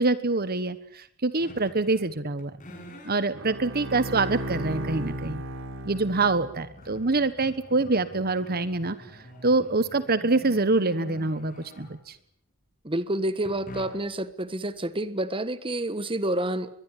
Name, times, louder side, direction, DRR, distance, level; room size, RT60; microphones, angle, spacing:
voice 1, 0.0-2.5 3.0-5.4 5.8-9.0 9.4-12.2, right 3 dB, 45° right, 13 dB, 1.3 m, -25 dB
sound 1, 1.4-2.1 2.4-3.2 3.9-4.0 6.0-6.1 6.4-12.2 13.4-14.2, equal, 35° left, 7.7 m, -46 dB
Bowed string instrument, 3.3-6.9, right 1 dB, 65° right, 3.2 m, -35 dB
voice 2, 12.8-16.7, right 1 dB, 25° right, 13 dB, 1.4 m, -29 dB
23.0 x 22.0 x 10.0 m, 0.68 s
head